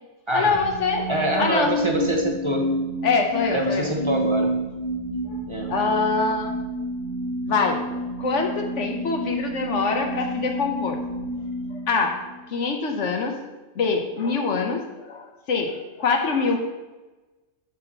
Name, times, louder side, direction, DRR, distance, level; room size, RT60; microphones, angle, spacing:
voice 1, 0.3-1.1 1.4-1.8 3.0-3.9 5.3-5.4 5.7-6.5 7.5-7.8 8.2-11.0 11.9-12.2 12.5-13.3 13.7-16.6, left 4 dB, 75° left, 3 dB, 1.3 m, -24 dB
sound 1, 0.5-12.7, equal, 20° left, 1.3 m, -29 dB
voice 2, 1.1-2.6 3.5-4.5 5.5-5.7, right 1 dB, 25° right, 1 dB, 1.0 m, -25 dB
7.9 x 4.2 x 6.7 m, 1.2 s
omnidirectional pair, 1.2 m